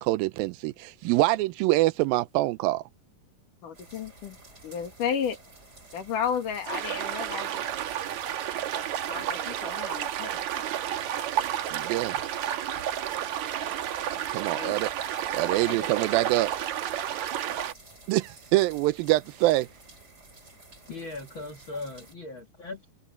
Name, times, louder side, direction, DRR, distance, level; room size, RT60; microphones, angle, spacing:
voice 1, 0.0-2.8 11.7-12.2 14.3-14.9 15.3-16.5 18.1-19.7, right 18 dB, 85° right, 2.1 m, -25 dB
voice 2, 3.6-4.4 4.6-5.4 5.9-7.7 9.1-10.3 14.5-14.8 15.7-15.9, left 7 dB, 60° left, 3.1 m, -33 dB
sound 1, 3.7-22.1, right 2 dB, 15° right, 4.1 m, -52 dB
sound 2, 6.7-17.7, right 10 dB, 65° right, 1.9 m, -31 dB
voice 3, 20.9-22.9, left 2 dB, 40° left, 2.0 m, -39 dB
open air
omnidirectional pair, 4.8 m